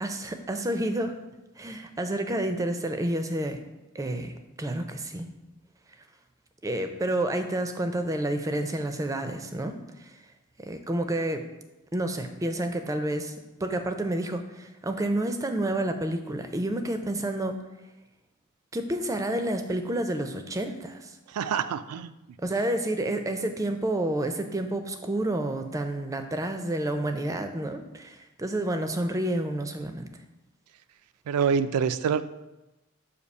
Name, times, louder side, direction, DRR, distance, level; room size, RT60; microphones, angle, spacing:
voice 1, 0.0-1.2 1.6-3.6 3.9-5.3 6.6-10.1 10.6-11.5 11.9-13.4 13.6-17.6 18.7-21.1 22.4-30.1, right 1 dB, 15° right, 7 dB, 0.4 m, -29 dB
voice 2, 21.3-22.1 31.3-32.2, right 6 dB, 90° right, 13 dB, 0.3 m, -26 dB
6.6 x 2.7 x 5.3 m, 1.0 s
head